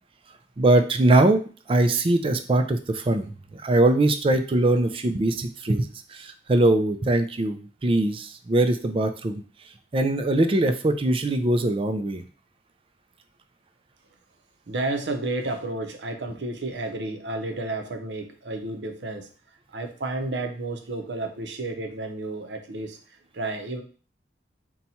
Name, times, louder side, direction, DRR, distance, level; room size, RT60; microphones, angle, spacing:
voice 1, 0.6-1.4 1.7-9.4 9.9-12.2, right 2 dB, 30° right, 8 dB, 0.4 m, -22 dB
voice 2, 14.7-19.3 19.7-23.0 23.3-23.8, right 2 dB, 75° right, 5 dB, 0.7 m, -31 dB
4.1 x 2.3 x 4.2 m, 0.38 s
head